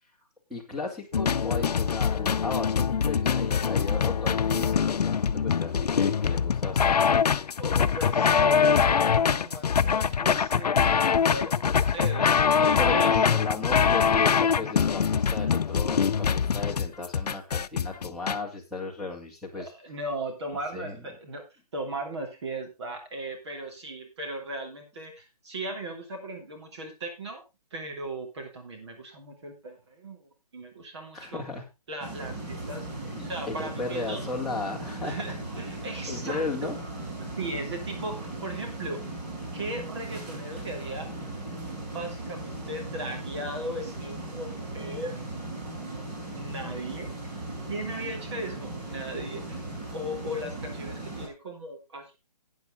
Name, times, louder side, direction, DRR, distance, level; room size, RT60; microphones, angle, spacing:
voice 1, 0.5-7.3 12.8-19.7 20.7-21.0 31.1-31.7 33.0-35.4 36.1-36.8, left 3 dB, ahead, -4 dB, 2.2 m, -35 dB
sound 1, 1.1-18.4, left 6 dB, 85° left, 0.6 m, -23 dB
voice 2, 7.6-13.8 19.6-21.4 21.7-27.4 27.7-31.4 31.9-34.2 35.0-36.7 37.4-39.0 39.5-41.1 41.9-45.2 46.2-47.3 47.7-52.1, right 1 dB, 45° right, 3 dB, 2.9 m, -37 dB
sound 2, 32.0-51.3, right 2 dB, 30° right, 4.9 m, -37 dB
12.0 x 9.4 x 3.7 m, 0.25 s
hypercardioid pair, 165°, 20 cm